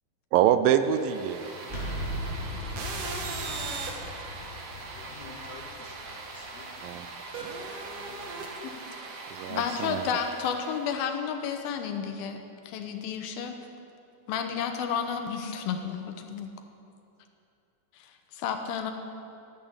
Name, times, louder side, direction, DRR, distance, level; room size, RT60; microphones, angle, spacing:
voice 1, 0.3-1.5 6.8-7.1 9.3-10.0, right 10 dB, 80° right, 10 dB, 2.3 m, -25 dB
sound 1, 0.8-11.0, right 3 dB, 55° right, 2.0 m, -39 dB
sound 2, 1.6-7.4, left 1 dB, 30° left, 1.2 m, -38 dB
voice 2, 4.8-6.7 7.9-8.3, left 4 dB, 65° left, 0 dB, 2.9 m, -50 dB
voice 3, 9.5-13.6 14.3-16.5 17.9-18.9, left 7 dB, 80° left, 6 dB, 2.8 m, -32 dB
13.0 x 10.0 x 8.1 m, 2.7 s
omnidirectional pair, 4.2 m